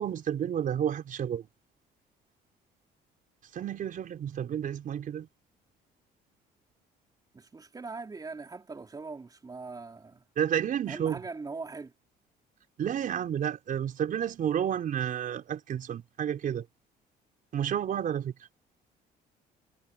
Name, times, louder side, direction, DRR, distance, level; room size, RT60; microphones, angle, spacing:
voice 1, 0.0-1.5 3.5-5.3 10.4-11.2 12.8-16.7 17.5-18.3, right 9 dB, 55° right, 5.3 m, -31 dB
voice 2, 7.3-10.2 10.9-11.9, right 4 dB, 20° right, 4.2 m, -41 dB
cardioid pair, 110°, 17 cm